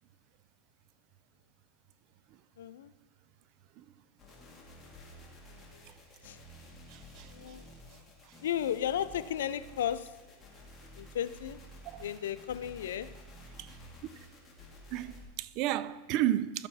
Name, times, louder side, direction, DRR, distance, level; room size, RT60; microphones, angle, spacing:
voice 1, 2.6-2.9 6.2-6.4 7.3-7.6 8.4-10.1 11.0-11.6 12.0-13.1, left 10 dB, 90° left, 0.5 m, -34 dB
sound 1, 4.2-15.2, equal, 15° left, 2.0 m, -52 dB
voice 2, 6.9-7.3 11.9-12.1 13.6-13.8 14.9-16.7, right 13 dB, 50° right, 0.4 m, -32 dB
12.0 x 6.9 x 4.1 m
supercardioid pair, 130°, 0 cm